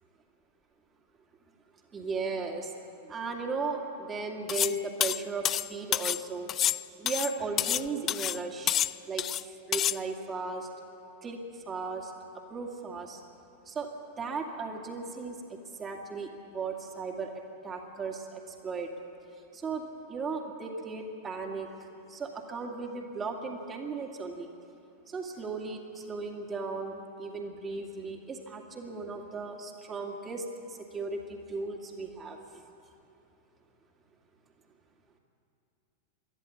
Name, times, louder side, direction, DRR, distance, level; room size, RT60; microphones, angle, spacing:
voice 1, 1.9-2.7 3.0-6.5 7.0-8.8 9.1-10.7 11.2-12.1 12.5-13.2 13.7-13.9 14.2-17.3 17.6-18.9 19.3-24.5 25.1-32.4, right 4 dB, 20° right, 2 dB, 2.3 m, -36 dB
sound 1, 4.5-4.8 5.0-6.2 6.5-7.8 8.1-8.4 8.7-9.4 9.7-10.0, left 11 dB, 30° left, 0.4 m, -28 dB
23.5 x 13.5 x 8.5 m, 2.7 s
figure-of-eight pair, 90°, 0 cm